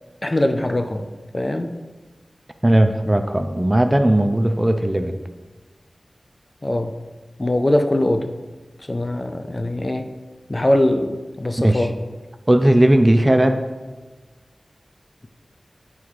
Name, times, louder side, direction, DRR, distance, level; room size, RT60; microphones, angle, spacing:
voice 1, 0.2-1.1 1.3-1.7 6.6-6.9 7.4-8.3 8.9-10.1 10.5-12.0, left 1 dB, 30° left, 7 dB, 0.5 m, -21 dB
voice 2, 2.6-5.2 11.6-11.9 12.5-13.6, right 1 dB, 20° right, 7 dB, 0.5 m, -17 dB
8.9 x 3.5 x 4.8 m, 1.3 s
wide cardioid pair, 65°, 0 cm